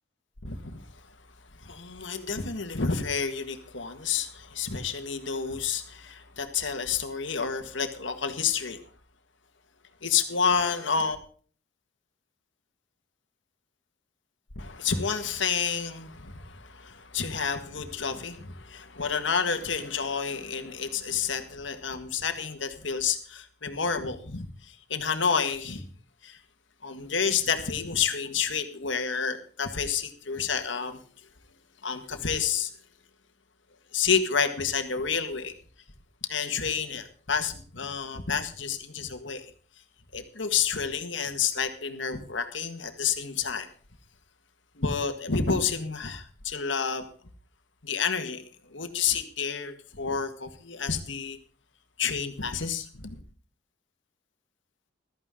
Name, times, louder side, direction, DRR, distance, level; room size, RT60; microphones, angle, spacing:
voice 1, 0.4-1.1 1.5-8.9 10.0-11.2 14.5-25.9 26.2-26.4 26.8-31.3 31.8-32.7 33.9-35.5 36.2-39.5 40.1-43.7 44.7-47.0 47.8-51.4 52.0-53.2, left 6 dB, 75° left, 1.7 m, -29 dB
15.0 x 13.5 x 3.8 m
head